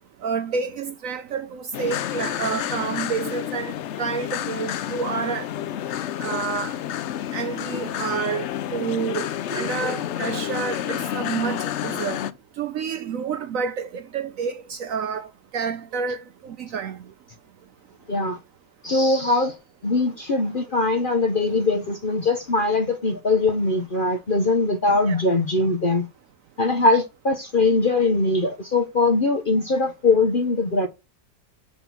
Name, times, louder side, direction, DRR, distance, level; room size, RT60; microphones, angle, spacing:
voice 1, 0.2-3.7 4.0-5.5 6.2-6.8 7.3-8.5 8.7-9.3 9.5-12.2 12.6-15.3 15.5-16.2 16.4-17.0 25.1-25.2, right 6 dB, 65° right, 0.9 m, -29 dB
sound 1, 1.7-12.3, left 11 dB, 85° left, 0.6 m, -29 dB
voice 2, 9.5-10.1 18.1-18.4 18.8-19.6 19.8-26.1 26.6-30.9, left 3 dB, 40° left, 0.8 m, -21 dB
7.7 x 4.3 x 5.7 m
omnidirectional pair, 1.8 m